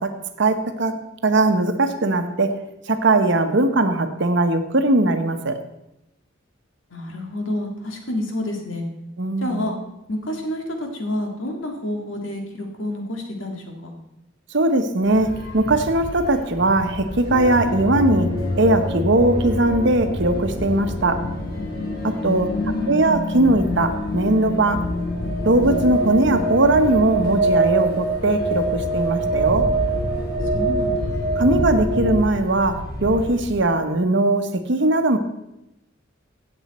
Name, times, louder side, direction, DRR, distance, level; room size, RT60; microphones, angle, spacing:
voice 1, 0.0-2.6 2.9-5.6 9.2-9.7 14.5-18.3 18.6-21.2 22.0-22.5 22.9-24.8 25.4-29.7 31.4-35.2, right 2 dB, 60° right, 8 dB, 1.0 m, -20 dB
voice 2, 6.9-8.8 9.4-9.7 10.1-13.9 22.2-23.0 30.5-31.1, left 1 dB, 70° left, 2 dB, 2.1 m, -29 dB
sound 1, 15.0-33.5, equal, 50° left, 3.6 m, -32 dB
sound 2, 17.3-32.2, right 1 dB, 90° left, 2.6 m, -25 dB
16.5 x 7.2 x 4.2 m, 0.91 s
head